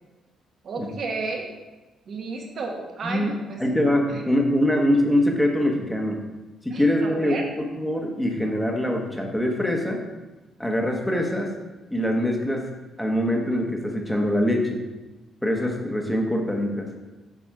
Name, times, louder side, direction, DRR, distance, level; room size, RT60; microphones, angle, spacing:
voice 1, 0.6-1.5 2.1-3.6 4.1-4.2 6.7-7.4, right 3 dB, 55° right, 0 dB, 1.5 m, -32 dB
voice 2, 3.6-6.3 6.6-10.0 10.6-11.5 11.9-12.7 13.0-14.8 15.4-16.9, left 1 dB, 5° left, 1 dB, 1.3 m, -23 dB
7.5 x 4.1 x 4.8 m, 1.1 s
cardioid pair, 90°, 0 cm